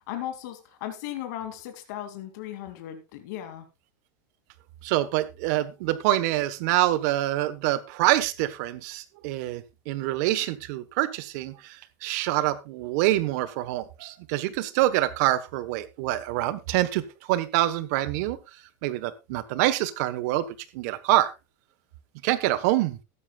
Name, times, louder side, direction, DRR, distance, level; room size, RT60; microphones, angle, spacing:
voice 1, 0.1-3.7, left 12 dB, 65° left, 6 dB, 2.6 m, -36 dB
voice 2, 4.8-11.8 12.0-18.4 18.8-20.5 20.7-21.3 22.2-23.0, right 15 dB, 60° right, 15 dB, 1.2 m, -26 dB
14.5 x 12.5 x 2.4 m, 0.25 s
supercardioid pair, 165°, 10 cm